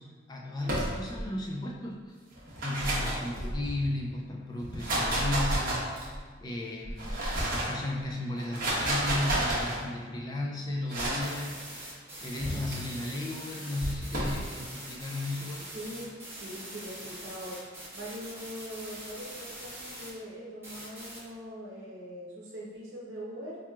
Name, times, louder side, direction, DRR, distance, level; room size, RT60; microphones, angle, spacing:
voice 1, 0.0-2.2 2.6-11.6 12.2-15.7, left 1 dB, 20° left, -2 dB, 0.3 m, -35 dB
sound 1, 0.6-1.3 2.3-3.9 4.6-6.2 6.8-7.8 8.4-9.8 10.9-11.3 12.4-12.8 13.8-14.4, right 1 dB, 50° right, 1.0 m, -30 dB
sound 2, 11.2-20.1 20.6-21.2, right 1 dB, 10° right, 1.2 m, -43 dB
voice 2, 12.4-12.8 15.7-17.7 17.9-23.6, equal, 80° right, -4 dB, 0.7 m, -42 dB
4.6 x 2.9 x 2.3 m, 1.6 s
head